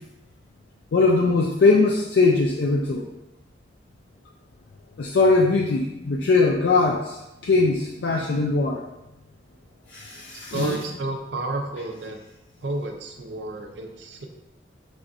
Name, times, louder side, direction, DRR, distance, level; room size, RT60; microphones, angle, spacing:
voice 1, 0.9-3.1 5.0-8.8 9.9-10.8, left 3 dB, 70° left, -1 dB, 0.4 m, -21 dB
voice 2, 10.5-12.2 12.6-14.3, right 2 dB, 80° right, 4 dB, 0.5 m, -31 dB
4.8 x 3.4 x 2.6 m, 0.94 s
head